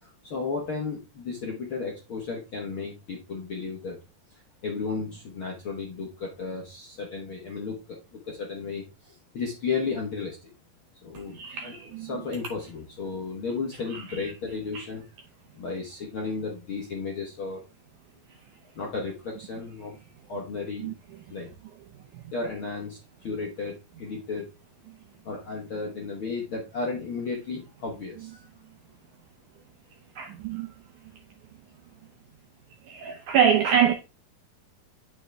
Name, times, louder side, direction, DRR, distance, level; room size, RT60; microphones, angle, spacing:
voice 1, 0.0-4.0 4.3-10.5 11.0-11.7 12.0-15.1 15.5-17.6 18.7-19.9 20.3-20.9 21.3-21.5 22.3-24.5 25.2-28.4, left 4 dB, 60° left, 1.3 m, -34 dB
voice 2, 11.3-12.1 13.9-14.2 14.7-14.8 20.8-20.9 30.2-30.7 32.9-33.9, right 8 dB, 80° right, 1.8 m, -25 dB
9.2 x 6.2 x 3.4 m
omnidirectional pair, 4.4 m